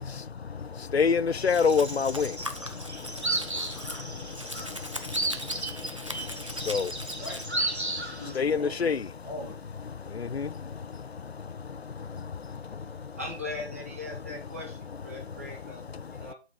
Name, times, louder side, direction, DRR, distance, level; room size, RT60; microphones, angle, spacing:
voice 1, 0.9-2.3 6.7-6.9 8.4-9.0 10.3-10.5, left 5 dB, 75° left, 0.5 m, -24 dB
sound 1, 1.4-8.3, right 2 dB, 85° right, 1.6 m, -34 dB
Domestic sounds home sounds, 1.5-7.5, equal, 30° right, 0.5 m, -41 dB
voice 2, 7.0-7.5 7.9-9.7, left 1 dB, 10° left, 1.0 m, -42 dB
voice 3, 12.5-16.3, left 2 dB, 15° right, 0.9 m, -40 dB
7.8 x 4.0 x 5.1 m
figure-of-eight pair, 155°, 32 cm